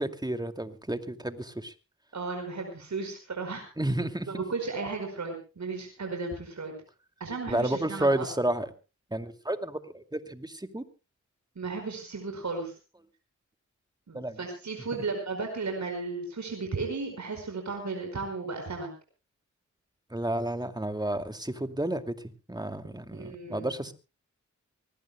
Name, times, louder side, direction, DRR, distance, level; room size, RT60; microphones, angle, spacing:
voice 1, 0.0-1.7 3.8-4.3 7.5-8.7 9.1-10.8 14.1-14.4 20.1-22.1 22.5-23.9, right 1 dB, 15° right, 8 dB, 2.4 m, -31 dB
voice 2, 2.1-3.6 4.0-6.7 7.2-8.3 11.5-12.7 14.1-18.9 23.1-23.7, right 4 dB, 70° right, 4 dB, 4.9 m, -35 dB
24.5 x 19.5 x 2.2 m, 0.32 s
cardioid pair, 50°, 30 cm